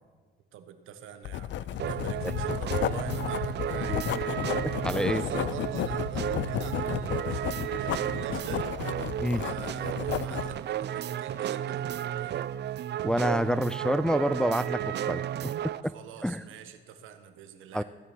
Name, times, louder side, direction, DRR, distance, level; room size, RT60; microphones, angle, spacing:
voice 1, 0.5-4.1 4.9-8.7 9.2-12.5 15.9-17.8, right 8 dB, 90° right, 9 dB, 1.4 m, -44 dB
Writing, 1.2-10.6, left 12 dB, 65° left, 0.5 m, -33 dB
sound 1, 1.8-15.8, right 11 dB, 60° right, 0.5 m, -33 dB
voice 2, 4.6-5.2 9.2-9.4 13.0-16.0 16.2-16.4 17.7-17.8, equal, 5° left, 16 dB, 0.4 m, -28 dB
16.5 x 10.0 x 6.2 m, 1.5 s
cardioid pair, 90°, 20 cm